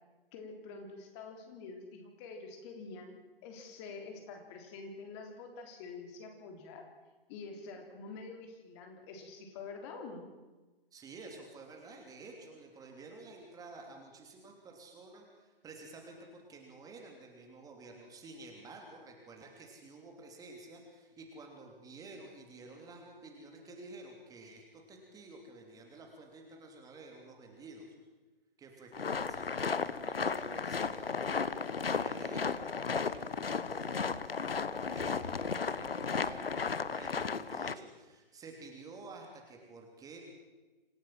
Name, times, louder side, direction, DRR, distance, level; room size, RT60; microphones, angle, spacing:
voice 1, 0.3-6.9 7.3-10.3, left 4 dB, 30° left, 4 dB, 3.7 m, -47 dB
voice 2, 10.9-27.9 28.6-31.2 31.8-34.0 34.9-40.2, right 3 dB, 10° right, 1 dB, 3.1 m, -51 dB
sound 1, 28.9-37.7, left 5 dB, 75° left, 1.1 m, -34 dB
27.0 x 15.5 x 7.6 m, 1.2 s
figure-of-eight pair, 130°, 29 cm